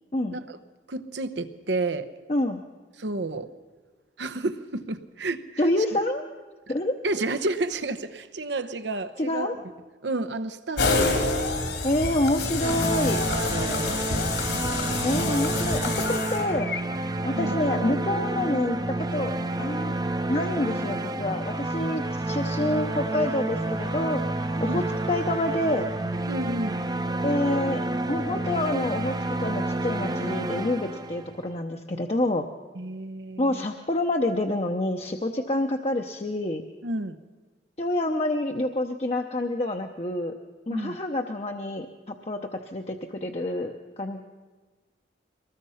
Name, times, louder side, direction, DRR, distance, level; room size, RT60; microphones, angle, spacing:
voice 1, 0.9-2.1 3.0-3.5 4.2-5.4 7.0-9.5 10.0-11.3 13.2-14.0 17.3-17.5 24.6-24.9 26.3-26.8 32.7-33.6 36.8-37.2 40.7-41.0, right 2 dB, 85° right, 11 dB, 1.0 m, -31 dB
voice 2, 2.3-2.6 5.6-6.2 6.7-7.0 9.2-9.5 11.8-13.2 15.0-16.7 17.2-19.3 19.6-19.9 20.3-24.2 24.6-25.9 27.2-29.1 29.4-32.5 33.4-36.6 37.8-40.3 40.7-44.2, left 1 dB, 35° left, 3 dB, 0.7 m, -27 dB
sound 1, 10.8-16.8, left 3 dB, 80° left, 3.1 m, -27 dB
sound 2, 12.6-31.5, right 2 dB, 20° right, 0.7 m, -29 dB
23.0 x 19.5 x 5.7 m, 1.3 s
head